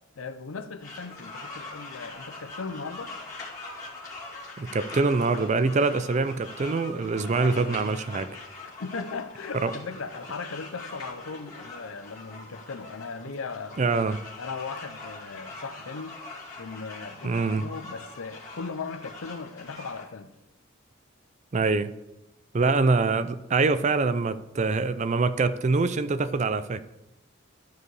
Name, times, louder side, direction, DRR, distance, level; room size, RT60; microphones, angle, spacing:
voice 1, 0.2-3.2 8.6-13.8 14.4-16.1 16.6-20.3 22.6-22.9, left 4 dB, 85° left, 0.7 m, -38 dB
sound 1, 0.8-20.0, left 3 dB, 15° left, 2.7 m, -42 dB
voice 2, 4.6-8.3 9.5-9.7 13.8-14.2 17.2-17.6 21.5-21.9 22.5-26.8, right 3 dB, 35° right, 0.4 m, -24 dB
12.5 x 4.8 x 4.7 m
head